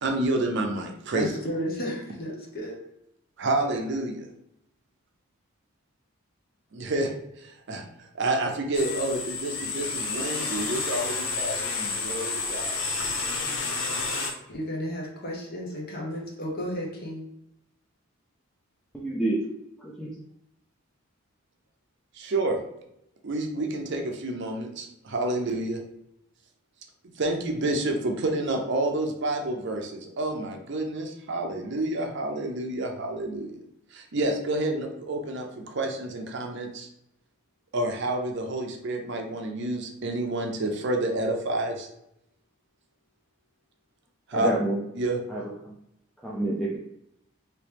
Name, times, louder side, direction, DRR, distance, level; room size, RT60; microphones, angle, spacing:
voice 1, 0.0-1.3 3.4-4.3 6.7-7.1 7.4-7.9 8.1-12.8 22.1-22.6 23.2-25.8 27.2-33.6 33.9-36.9 37.7-41.9 44.3-44.5 45.0-45.2, right 2 dB, 55° right, 0.6 m, -29 dB
voice 2, 1.1-2.8 14.5-17.2, equal, 45° left, 0.9 m, -33 dB
sound 1, 8.7-14.3, left 4 dB, 65° left, 0.6 m, -30 dB
voice 3, 18.9-19.4 19.8-20.2 44.3-44.8 45.3-45.7 46.2-46.8, right 2 dB, ahead, 0.4 m, -28 dB
3.1 x 3.0 x 3.3 m
head